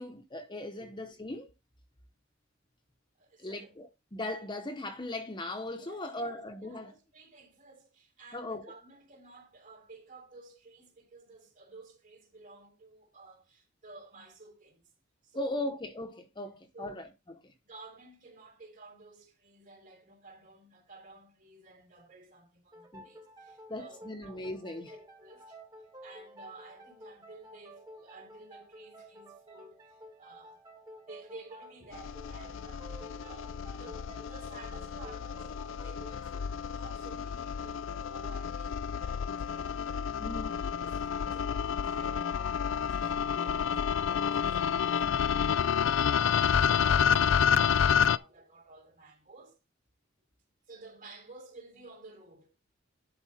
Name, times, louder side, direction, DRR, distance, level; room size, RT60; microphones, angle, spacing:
voice 1, 0.0-1.5 3.4-6.9 8.3-8.7 15.3-17.1 22.9-23.0 23.7-24.9 40.2-40.6, left 1 dB, 25° left, 1.0 m, -38 dB
voice 2, 0.8-1.2 3.1-3.8 5.7-14.9 15.2-15.7 16.7-17.1 17.6-24.5 24.7-25.6 26.0-30.6 31.0-49.6 50.7-52.5, right 3 dB, 45° right, 3.3 m, -53 dB
sound 1, 22.7-38.1, equal, 20° right, 1.5 m, -52 dB
sound 2, 31.9-48.2, left 7 dB, 75° left, 0.4 m, -29 dB
11.0 x 4.7 x 4.2 m
head